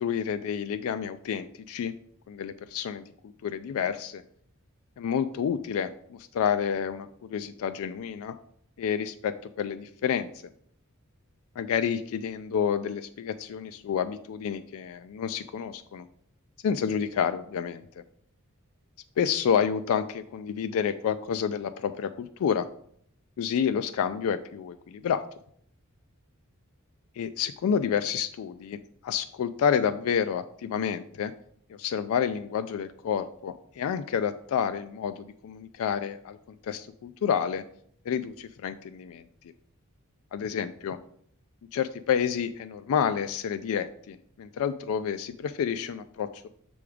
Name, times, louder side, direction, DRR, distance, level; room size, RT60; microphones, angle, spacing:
voice 1, 0.0-1.9 2.3-4.2 5.0-8.4 8.8-10.3 11.6-16.1 16.6-17.7 19.2-22.7 23.4-25.2 27.2-31.3 31.7-37.6 38.1-39.2 40.3-41.0 41.7-46.5, left 7 dB, 70° left, 10 dB, 0.3 m, -29 dB
6.8 x 3.5 x 4.9 m, 0.65 s
head